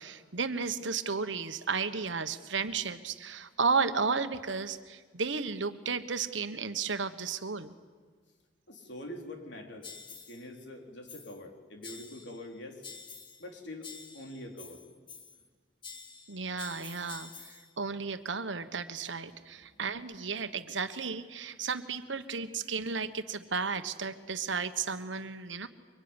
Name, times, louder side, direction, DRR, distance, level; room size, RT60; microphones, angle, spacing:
voice 1, 0.0-7.7 16.3-25.7, right 5 dB, 75° right, 10 dB, 1.4 m, -33 dB
voice 2, 8.7-9.9 10.3-12.8 13.4-14.8, left 1 dB, 70° left, 3 dB, 3.9 m, -44 dB
sound 1, 9.8-10.5 11.1-11.5 11.8-12.5 12.8-13.5 13.8-15.5 15.8-17.7, left 5 dB, 25° left, 1.7 m, -48 dB
24.5 x 24.0 x 9.8 m, 1.5 s
head